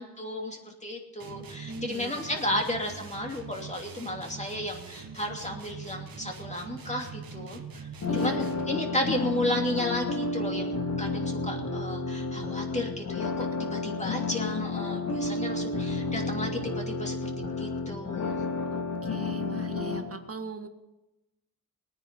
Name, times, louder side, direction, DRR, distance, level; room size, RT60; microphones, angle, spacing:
voice 1, 0.0-7.9 8.2-18.4, left 1 dB, 20° left, 1 dB, 2.8 m, -33 dB
sound 1, 1.2-8.9, right 6 dB, 65° right, 1.6 m, -43 dB
voice 2, 1.6-2.2 2.5-2.6 8.1-8.8 13.4-13.6 15.5-15.8 18.7-20.7, right 3 dB, 35° right, 7 dB, 1.6 m, -41 dB
sound 2, 8.0-20.0, left 3 dB, 50° left, 2.3 m, -31 dB
19.5 x 9.7 x 5.4 m, 0.97 s
cardioid pair, 85°, 38 cm